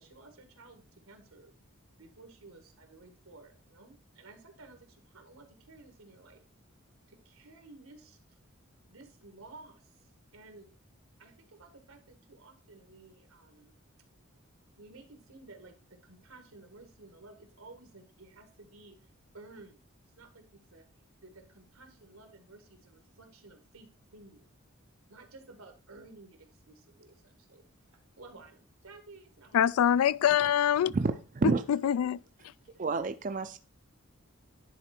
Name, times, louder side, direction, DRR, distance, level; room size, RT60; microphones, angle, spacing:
voice 1, 0.0-1.6 2.0-6.4 7.0-8.4 8.7-10.7 11.2-14.3 14.7-20.9 21.2-24.5 25.1-29.7, right 3 dB, 85° right, 1.7 m, -54 dB
voice 2, 29.5-30.9 31.4-32.2, left 9 dB, 85° left, 0.3 m, -25 dB
voice 3, 30.9-31.6 32.8-33.6, right 3 dB, 35° right, 0.4 m, -29 dB
10.0 x 4.1 x 4.3 m
head